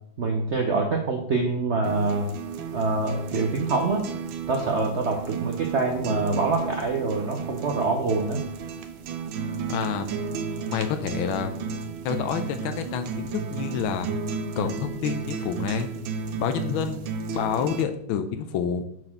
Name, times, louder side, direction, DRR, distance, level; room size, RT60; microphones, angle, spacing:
voice 1, 0.2-2.3 2.7-4.1 4.5-8.4, right 3 dB, 65° right, 2 dB, 0.7 m, -25 dB
sound 1, 1.8-17.8, right 5 dB, 85° right, 1.5 m, -33 dB
voice 2, 9.7-10.1 10.7-11.8 12.0-14.1 14.6-15.9 16.4-18.8, left 7 dB, 85° left, 8 dB, 1.5 m, -28 dB
6.5 x 4.2 x 5.8 m, 0.71 s
omnidirectional pair, 2.2 m